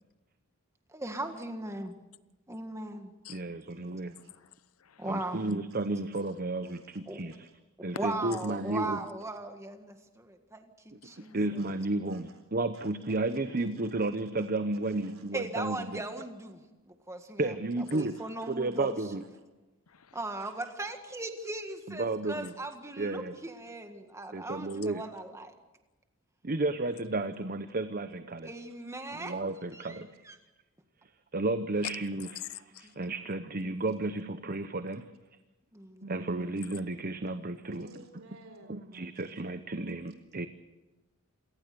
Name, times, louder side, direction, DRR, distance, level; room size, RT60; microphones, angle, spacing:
voice 1, 0.9-2.0 2.5-3.1 3.7-4.1 5.0-5.5 7.1-7.2 7.8-11.6 13.1-13.2 15.3-17.6 17.9-18.9 20.1-25.5 28.4-29.3 29.7-30.4 32.8-33.0 35.7-36.3, right 2 dB, 15° right, 1.7 m, -39 dB
voice 2, 3.3-4.1 5.0-7.5 7.8-9.0 10.9-11.0 11.3-16.0 17.4-18.1 18.5-19.2 21.9-22.5 23.0-23.4 24.3-25.0 26.4-28.5 29.1-30.1 31.3-32.3 33.0-35.0 36.0-37.9 38.7-40.5, right 2 dB, 40° right, 0.8 m, -32 dB
voice 3, 4.2-5.1 11.0-11.4 19.9-20.2 31.8-32.0 32.3-33.1, left 12 dB, 85° left, 0.8 m, -45 dB
voice 4, 6.6-7.0 7.4-7.5 11.6-11.8 12.1-12.4 12.7-14.5 14.8-15.7 16.5-16.6 17.8-18.5 18.8-18.9 19.2-19.4 20.4-20.5 24.9-25.1 28.8-29.4 32.4-32.5 37.7-39.3, right 2 dB, 65° right, 4.0 m, -58 dB
27.5 x 18.0 x 6.9 m
head